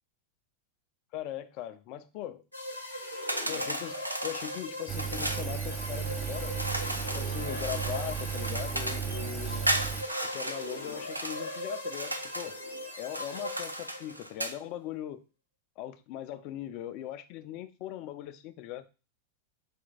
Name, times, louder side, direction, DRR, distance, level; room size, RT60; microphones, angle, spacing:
voice 1, 1.1-2.4 3.4-6.6 7.1-9.7 10.3-12.6 13.0-15.2 15.8-18.8, left 12 dB, 45° left, 0.4 m, -39 dB
sound 1, 2.5-14.3, left 1 dB, 90° left, 0.8 m, -40 dB
sound 2, 3.3-5.5 6.6-9.2 9.7-11.4 11.9-12.6 13.1-14.6, right 1 dB, 85° right, 0.4 m, -35 dB
Engine, 4.9-10.0, right 7 dB, 15° right, 0.5 m, -35 dB
4.2 x 2.2 x 4.1 m
figure-of-eight pair, 90°, 0 cm